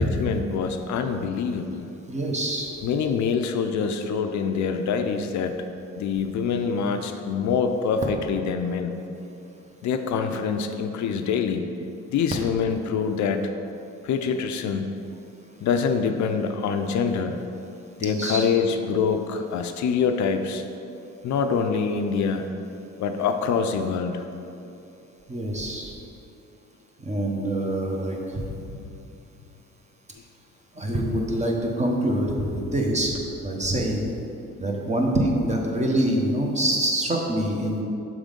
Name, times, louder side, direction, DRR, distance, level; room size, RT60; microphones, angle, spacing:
voice 1, 0.0-1.9 2.8-5.5 6.0-8.9 9.8-11.7 12.1-13.4 14.0-14.9 15.6-17.4 18.0-20.6 21.2-22.5 23.0-24.3 28.5-28.8, left 6 dB, 70° left, 7 dB, 0.5 m, -25 dB
voice 2, 2.1-2.7 18.0-18.5 25.3-25.9 27.0-28.4 30.8-34.1 34.6-37.8, right 1 dB, 25° right, 0 dB, 1.0 m, -25 dB
6.1 x 3.7 x 5.1 m, 2.8 s
cardioid pair, 90°, 30 cm